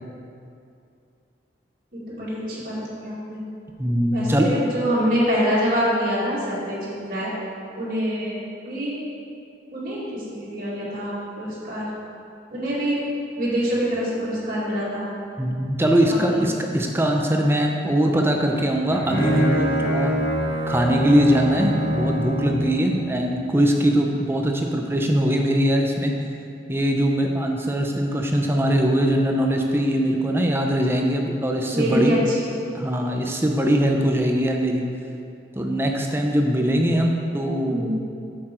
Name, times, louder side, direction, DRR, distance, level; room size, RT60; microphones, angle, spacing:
voice 1, 1.9-3.4 4.1-7.3 7.8-8.4 8.7-9.0 9.7-11.9 12.5-13.0 13.4-15.1 16.1-16.4 31.7-32.4 37.7-38.0, equal, 50° right, -8 dB, 2.2 m, -25 dB
voice 2, 3.8-4.5 15.4-20.1 20.7-26.1 26.7-32.1 32.7-34.8 35.5-37.9, equal, 10° right, 1 dB, 0.6 m, -21 dB
Bowed string instrument, 18.6-22.7, equal, 75° left, 1.6 m, -24 dB
7.7 x 6.7 x 4.4 m, 2.5 s
head